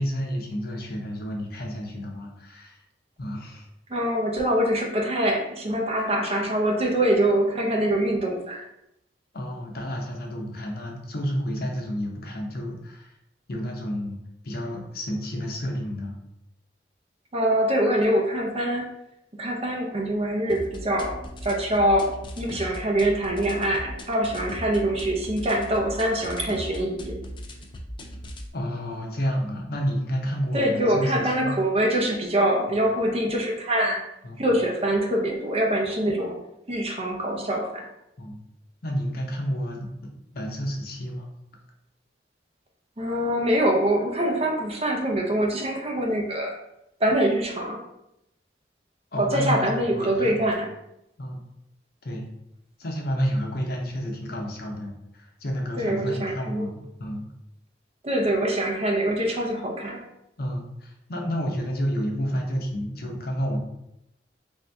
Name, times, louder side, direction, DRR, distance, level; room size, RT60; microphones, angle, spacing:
voice 1, 0.0-2.8 3.2-3.7 9.3-13.1 13.5-14.2 14.4-16.2 28.5-31.6 34.2-34.5 38.2-38.4 38.8-41.3 49.1-50.5 51.2-51.4 52.0-52.3 52.8-57.3 60.4-63.6, equal, 60° left, 1 dB, 0.7 m, -30 dB
voice 2, 3.9-8.6 17.3-18.9 19.4-27.2 30.5-34.0 34.4-36.4 36.7-37.9 43.0-46.5 47.0-47.8 49.2-50.7 55.8-56.7 58.0-60.0, right 1 dB, 35° right, 1 dB, 0.6 m, -24 dB
sound 1, 20.5-28.5, equal, 30° left, 0.4 m, -38 dB
3.6 x 2.7 x 3.4 m, 0.83 s
head